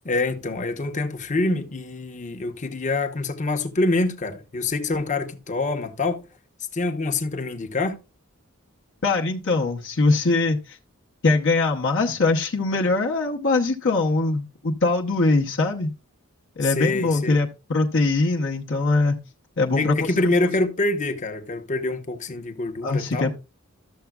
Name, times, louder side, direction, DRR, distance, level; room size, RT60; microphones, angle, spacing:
voice 1, 0.0-6.2 6.7-8.0 16.6-17.4 19.8-23.3, left 2 dB, 35° left, 0.9 m, -25 dB
voice 2, 9.0-10.8 11.2-15.9 16.6-19.2 19.6-20.0 20.3-20.4 22.8-23.3, left 3 dB, 60° left, 0.9 m, -22 dB
12.5 x 6.9 x 2.3 m
head